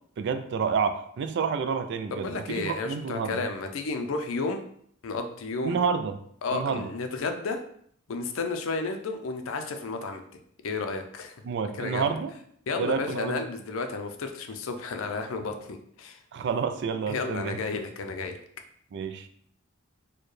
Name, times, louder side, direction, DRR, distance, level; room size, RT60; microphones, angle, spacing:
voice 1, 0.2-3.4 5.6-6.1 6.5-6.9 11.4-12.3 12.8-13.4 16.3-17.6 18.9-19.3, right 6 dB, 55° right, 9 dB, 0.3 m, -29 dB
voice 2, 2.1-4.6 5.0-5.8 6.4-7.6 8.1-10.2 10.6-11.4 11.7-12.1 12.7-16.2 17.1-18.4, left 3 dB, 70° left, 6 dB, 0.5 m, -32 dB
4.4 x 2.2 x 3.1 m, 0.66 s
head